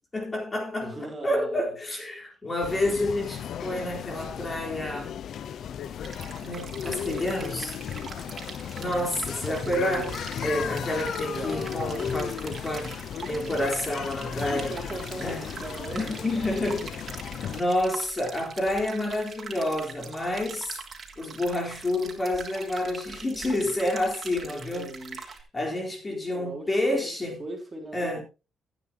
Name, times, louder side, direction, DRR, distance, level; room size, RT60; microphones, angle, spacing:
voice 1, 0.1-5.2 6.4-7.8 8.8-10.1 10.4-13.0 13.3-14.7 15.2-15.5 15.9-16.9 17.5-20.8 21.2-24.9 25.5-27.4 27.9-28.2, left 1 dB, 25° left, 4.1 m, -29 dB
voice 2, 0.8-1.8 9.4-10.2 11.3-11.7 14.5-16.9 24.4-25.5 26.1-28.2, right 2 dB, 25° right, 3.8 m, -39 dB
sound 1, 2.6-17.6, left 9 dB, 65° left, 0.7 m, -35 dB
sound 2, 6.0-25.4, right 5 dB, 45° right, 3.2 m, -42 dB
15.5 x 9.4 x 2.9 m
cardioid pair, 90°, 0 cm